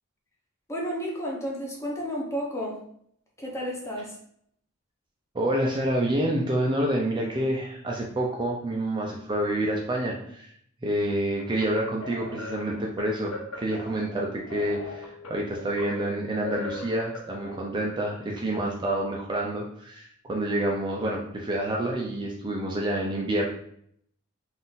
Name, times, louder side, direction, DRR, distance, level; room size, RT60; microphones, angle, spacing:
voice 1, 0.7-2.8 3.4-4.2, equal, 15° left, -2 dB, 0.9 m, -32 dB
voice 2, 5.3-10.5 10.8-23.4, right 1 dB, 20° right, -1 dB, 0.5 m, -28 dB
sound 1, 11.4-17.6, left 3 dB, 90° left, 0.9 m, -40 dB
3.9 x 2.5 x 3.9 m, 0.67 s
head